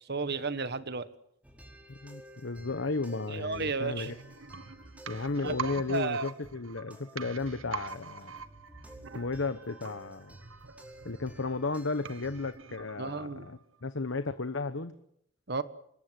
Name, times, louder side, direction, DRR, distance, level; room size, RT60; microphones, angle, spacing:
voice 1, 0.1-1.1 3.3-4.1 5.4-6.3 13.0-13.5 15.5-15.6, right 4 dB, 55° right, 12 dB, 1.5 m, -33 dB
sound 1, 1.4-12.6, right 1 dB, 5° right, 4.7 m, -53 dB
voice 2, 1.9-4.1 5.1-8.3 9.1-10.4 11.0-15.0, left 3 dB, 65° left, 10 dB, 1.1 m, -34 dB
sound 2, 4.1-13.8 14.1-14.2, right 6 dB, 80° right, 1.1 m, -45 dB
26.0 x 21.5 x 7.8 m, 0.72 s
head